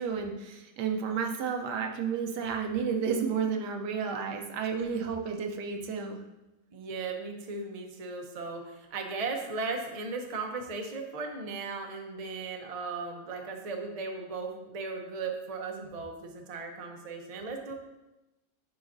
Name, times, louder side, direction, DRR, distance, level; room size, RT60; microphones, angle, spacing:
voice 1, 0.0-6.2, right 6 dB, 90° right, 4 dB, 1.3 m, -31 dB
voice 2, 6.7-17.7, right 4 dB, 45° right, 3 dB, 0.4 m, -37 dB
9.0 x 4.8 x 2.6 m, 0.99 s
omnidirectional pair, 1.7 m